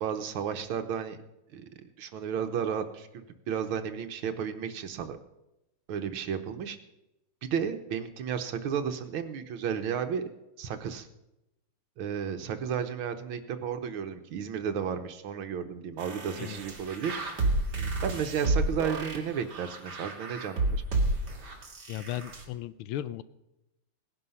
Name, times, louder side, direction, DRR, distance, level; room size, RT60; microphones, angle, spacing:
voice 1, 0.0-1.2 1.5-5.2 5.9-6.8 7.5-10.2 10.6-11.1 12.0-17.2 18.0-20.8, right 7 dB, 80° right, 8 dB, 1.9 m, -33 dB
sound 1, 16.0-22.4, right 2 dB, 55° right, 2.7 m, -31 dB
voice 2, 21.9-23.2, left 12 dB, 90° left, 16 dB, 1.5 m, -36 dB
18.0 x 10.5 x 5.6 m, 0.91 s
omnidirectional pair, 2.3 m